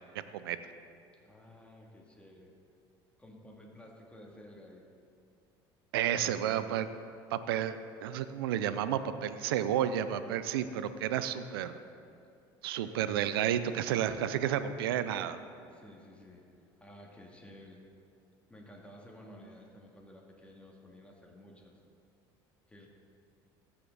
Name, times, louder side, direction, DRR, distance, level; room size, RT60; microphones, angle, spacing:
voice 1, 1.2-2.5 3.2-4.8 6.2-6.6 12.8-13.1 15.7-16.5 16.8-17.8 18.5-21.7 22.7-22.9, left 1 dB, 10° left, -1 dB, 2.2 m, -53 dB
voice 2, 5.9-6.9 7.3-11.8 12.6-15.4, right 10 dB, 90° right, 12 dB, 0.5 m, -31 dB
15.0 x 5.9 x 4.0 m, 2.6 s
supercardioid pair, 80°, 12 cm